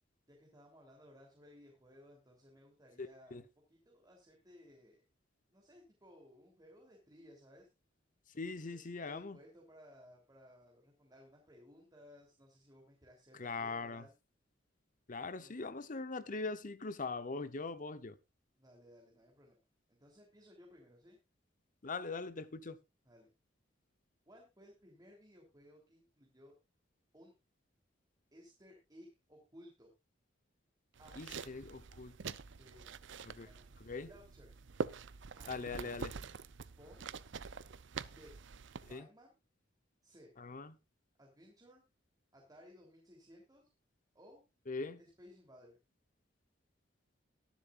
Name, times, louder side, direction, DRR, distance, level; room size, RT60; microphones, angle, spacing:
voice 1, 0.3-5.0 5.5-7.7 8.4-14.1 15.2-15.5 18.6-19.6 19.9-21.2 23.0-23.3 24.2-26.6 27.1-27.3 28.3-29.9 31.0-31.2 32.6-32.9 33.4-34.7 35.3-35.5 36.8-37.0 38.1-38.3 38.9-39.4 40.0-40.3 41.2-41.8 42.3-43.7 44.1-44.4 45.0-45.8, equal, 20° right, 3.3 m, -59 dB
voice 2, 3.0-3.4 8.3-9.4 13.4-14.0 15.1-18.2 21.8-22.8 31.2-32.4 33.3-33.5 33.8-34.1 35.5-36.1 38.9-39.1 40.4-40.7 44.7-45.0, left 3 dB, 45° left, 0.9 m, -41 dB
sound 1, 30.9-39.0, right 5 dB, 70° right, 0.6 m, -45 dB
22.5 x 7.5 x 2.5 m
head